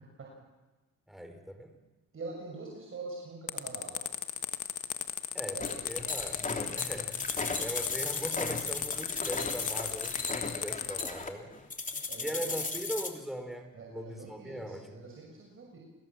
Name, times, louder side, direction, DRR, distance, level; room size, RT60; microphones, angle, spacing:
voice 1, 1.1-1.7 5.3-11.5 12.2-15.0, equal, ahead, 6 dB, 4.4 m, -40 dB
voice 2, 2.1-4.0 5.5-5.7 11.9-12.6 13.7-15.8, right 3 dB, 45° right, -1 dB, 6.4 m, -44 dB
sound 1, 3.5-11.0, left 11 dB, 80° left, 1.6 m, -35 dB
sound 2, 5.6-13.1, left 3 dB, 25° left, 3.2 m, -36 dB
29.5 x 21.0 x 7.4 m, 1.1 s
cardioid pair, 90°, 30 cm